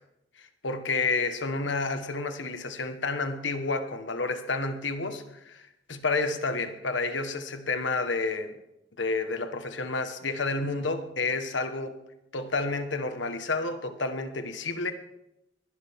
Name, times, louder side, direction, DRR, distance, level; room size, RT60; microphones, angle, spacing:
voice 1, 0.4-8.6 9.0-12.0 12.3-14.9, left 3 dB, 80° left, 8 dB, 1.4 m, -30 dB
21.5 x 11.5 x 3.7 m, 0.86 s
head